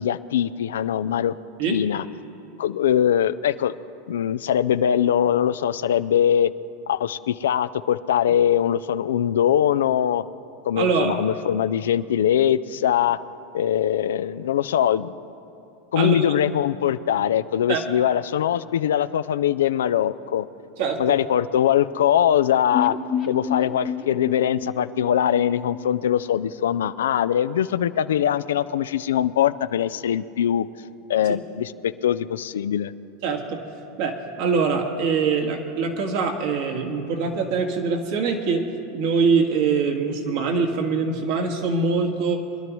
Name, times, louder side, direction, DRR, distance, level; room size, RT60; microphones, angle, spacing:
voice 1, 0.0-1.3 1.7-2.0 2.6-3.7 4.1-6.5 6.9-10.2 10.7-13.2 13.5-15.1 15.9-20.5 21.0-23.0 23.3-30.7 31.1-32.9, left 10 dB, 85° left, 14 dB, 0.4 m, -22 dB
voice 2, 10.8-11.2 16.0-16.3 17.7-17.8 20.8-21.2 33.2-33.6 34.0-38.6 38.9-42.4, right 5 dB, 65° right, 2 dB, 1.7 m, -23 dB
sound 1, 22.7-26.6 26.9-27.0 27.2-27.3, left 6 dB, 40° left, 0.8 m, -30 dB
23.5 x 11.5 x 3.1 m, 2.8 s
hypercardioid pair, 110°, 0 cm